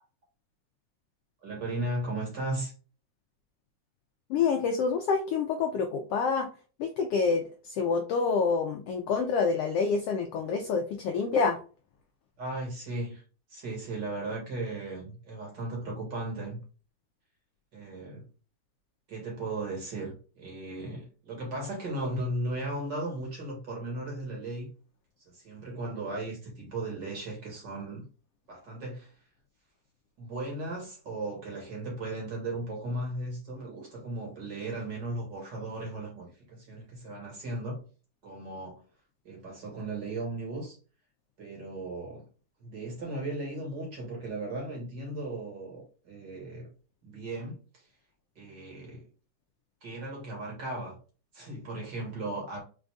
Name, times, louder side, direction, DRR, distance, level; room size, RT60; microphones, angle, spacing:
voice 1, 1.4-2.7 12.4-13.2 13.5-16.6 17.7-18.2 19.1-24.7 25.3-28.0 28.5-29.2 30.2-37.8 38.2-38.8 39.2-40.8 41.4-42.3 42.6-46.7 47.0-47.8 48.4-49.1 49.8-51.0 51.3-52.6, right 2 dB, 40° right, 2.3 m, -36 dB
voice 2, 4.3-6.5 6.8-11.6, left 5 dB, 85° left, 1.3 m, -27 dB
5.2 x 4.3 x 2.4 m
omnidirectional pair, 3.5 m